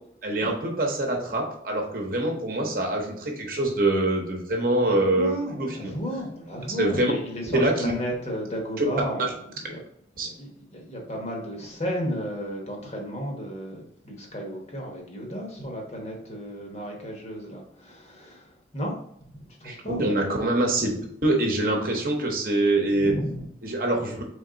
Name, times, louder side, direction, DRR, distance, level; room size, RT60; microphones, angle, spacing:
voice 1, 0.2-5.9 6.8-7.1 7.5-7.9 8.8-8.9 9.2-9.3 10.2-10.3 19.6-20.9 21.2-23.1 23.6-24.2, right 2 dB, 50° right, 1 dB, 0.9 m, -24 dB
voice 2, 5.2-9.8 10.2-18.9 19.3-20.2 23.0-23.4, equal, 35° left, 0 dB, 1.0 m, -33 dB
3.7 x 3.5 x 3.8 m, 0.70 s
head